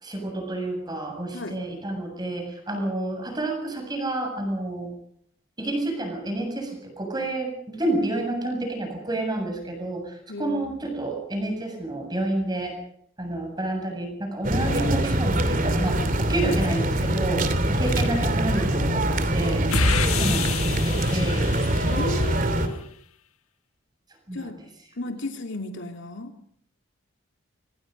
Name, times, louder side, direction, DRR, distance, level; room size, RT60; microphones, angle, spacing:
voice 1, 0.0-4.9 5.6-12.7 13.2-19.6 20.1-21.5 24.3-24.4, right 2 dB, 20° right, 3 dB, 7.4 m, -29 dB
voice 2, 10.3-10.7 19.8-20.1 21.8-22.8 24.3-24.6 25.0-26.3, left 2 dB, 60° left, 4 dB, 2.7 m, -34 dB
sound 1, 14.4-22.7, right 1 dB, 40° right, 2.8 m, -24 dB
sound 2, 19.7-22.4, left 4 dB, 90° left, 1.8 m, -28 dB
27.0 x 25.0 x 5.3 m, 0.66 s
head